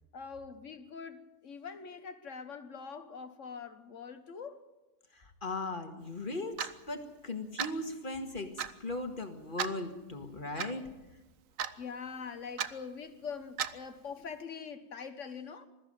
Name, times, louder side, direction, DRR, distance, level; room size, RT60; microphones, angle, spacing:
voice 1, 0.1-4.6 11.8-15.7, left 6 dB, 55° left, 1.6 m, -43 dB
voice 2, 5.1-10.9, left 2 dB, 35° left, 2.0 m, -38 dB
Clock, 6.6-6.8 7.6-7.8 8.6-8.7 9.6-9.8 10.6-10.7 11.6-11.8 12.6-12.7 13.6-13.8, right 9 dB, 65° right, 1.2 m, -34 dB
21.5 x 14.0 x 9.2 m
omnidirectional pair, 1.6 m